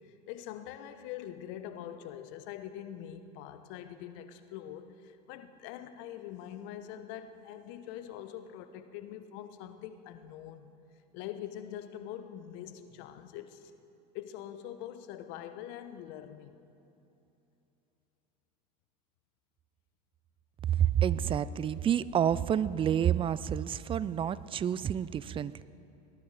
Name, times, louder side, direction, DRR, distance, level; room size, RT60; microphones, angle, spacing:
voice 1, 0.0-10.7 11.1-13.7 14.1-16.6, left 10 dB, 60° left, 10 dB, 1.0 m, -44 dB
voice 2, 20.7-25.6, right 9 dB, 25° right, 18 dB, 0.4 m, -29 dB
19.0 x 11.0 x 4.9 m, 2.9 s
hypercardioid pair, 90°, 21 cm